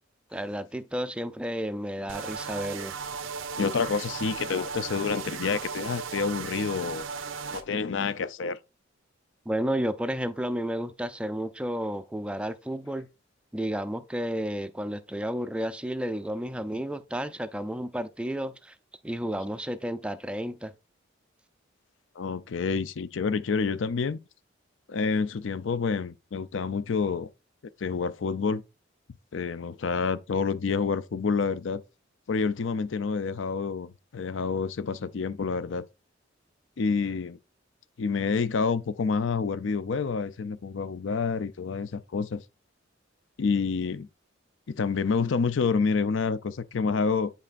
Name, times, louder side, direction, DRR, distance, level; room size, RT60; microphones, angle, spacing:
voice 1, 0.3-2.9 9.5-13.1 13.5-18.8 19.0-20.7, equal, 5° right, 0.4 m, -32 dB
sound 1, 2.1-7.6, right 5 dB, 85° right, 0.7 m, -36 dB
voice 2, 3.6-7.0 7.5-8.6 22.2-24.2 24.9-27.3 27.8-28.6 29.3-31.8 32.3-35.8 36.8-37.4 38.0-42.4 43.4-44.1 44.7-47.3, left 5 dB, 70° left, 0.5 m, -28 dB
8.4 x 5.4 x 2.5 m
head